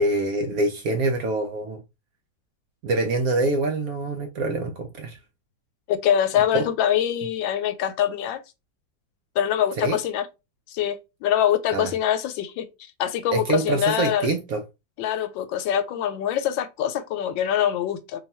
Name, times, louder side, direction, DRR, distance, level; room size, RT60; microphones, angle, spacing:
voice 1, 0.0-1.8 2.8-5.2 6.5-6.6 9.8-10.0 11.7-11.9 13.3-14.6, right 2 dB, 70° right, 0.9 m, -25 dB
voice 2, 5.9-8.4 9.4-10.3 10.7-12.6 13.0-14.3 15.0-18.2, left 10 dB, 90° left, 1.3 m, -24 dB
3.3 x 2.3 x 4.1 m
omnidirectional pair, 2.0 m